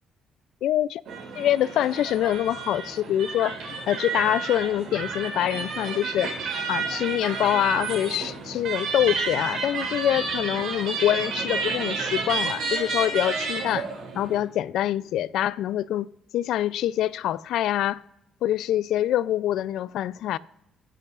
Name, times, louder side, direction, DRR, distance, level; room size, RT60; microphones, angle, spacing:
voice 1, 0.6-1.0 1.3-3.6 3.9-6.3 6.7-13.9 14.2-16.1 16.3-18.0 18.4-20.4, left 12 dB, 70° left, 0.3 m, -25 dB
sound 1, 1.0-14.4, right 4 dB, 65° right, 3.8 m, -31 dB
20.5 x 7.8 x 2.4 m
cardioid pair, 125°, 0 cm